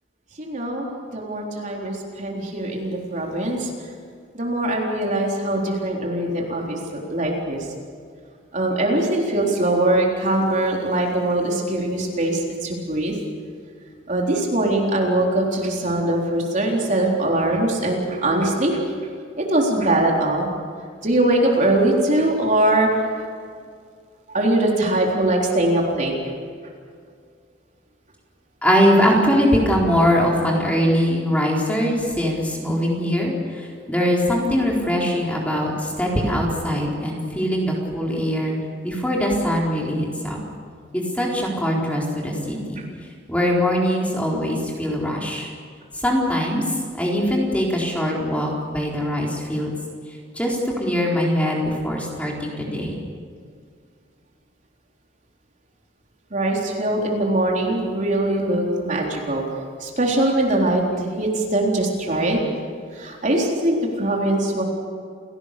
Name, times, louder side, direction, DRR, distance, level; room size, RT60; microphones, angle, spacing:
voice 1, 0.4-3.9 4.3-7.7 8.5-13.2 14.1-18.8 19.4-20.5 21.0-23.3 24.3-26.1 56.3-59.4 59.8-62.4 62.9-64.6, right 1 dB, 40° right, -1 dB, 3.9 m, -22 dB
voice 2, 28.6-38.6 38.8-40.4 40.9-42.8 43.3-45.5 46.0-46.6 46.9-49.7 50.4-53.0, equal, 5° left, -2 dB, 4.2 m, -22 dB
29.5 x 18.0 x 6.8 m, 2.1 s
head